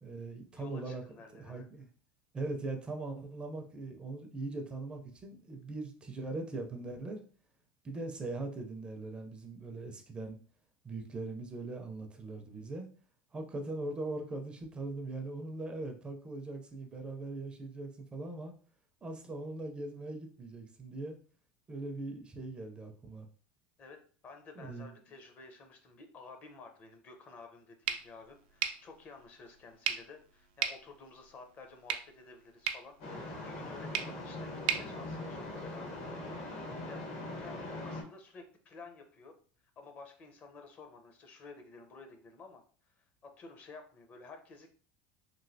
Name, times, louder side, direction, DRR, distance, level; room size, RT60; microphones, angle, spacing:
voice 1, 0.0-1.0 1.3-1.9 2.3-7.2 7.8-10.4 10.8-12.8 13.3-18.5 19.0-21.2 21.7-23.3 24.6-24.9, right 2 dB, 20° right, 4 dB, 0.4 m, -40 dB
voice 2, 0.5-1.7 23.8-36.0 36.9-37.0 37.4-39.4 39.8-44.7, left 4 dB, 35° left, 5 dB, 0.6 m, -52 dB
sound 1, 27.8-35.9, right 9 dB, 90° right, 0.4 m, -40 dB
sound 2, 33.0-38.0, left 2 dB, 65° left, 1.2 m, -41 dB
3.0 x 2.7 x 2.6 m, 0.42 s
supercardioid pair, 135°, 5 cm